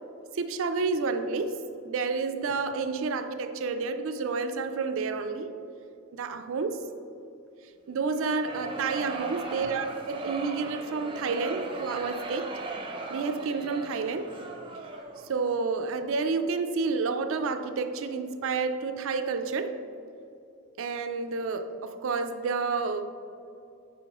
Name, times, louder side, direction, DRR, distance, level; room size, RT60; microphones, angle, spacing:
voice 1, 0.3-5.5 6.1-6.8 7.9-12.5 13.1-14.3 15.3-19.8 20.8-23.1, right 4 dB, 65° right, 8 dB, 0.4 m, -30 dB
sound 1, 8.1-15.3, right 2 dB, 25° right, 0.6 m, -38 dB
10.5 x 4.5 x 2.9 m, 2.7 s
head